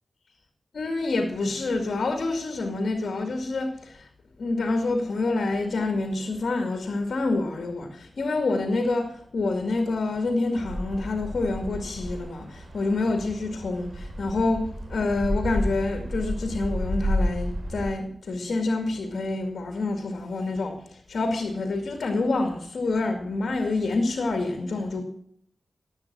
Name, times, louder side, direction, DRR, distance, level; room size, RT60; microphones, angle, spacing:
voice 1, 0.7-4.1 4.4-20.8 21.1-25.0, left 2 dB, 80° left, 4 dB, 2.2 m, -27 dB
sound 1, 10.5-17.8, equal, 70° right, 4.3 m, -31 dB
17.5 x 8.5 x 6.1 m, 0.65 s
cardioid pair, 50°, 0 cm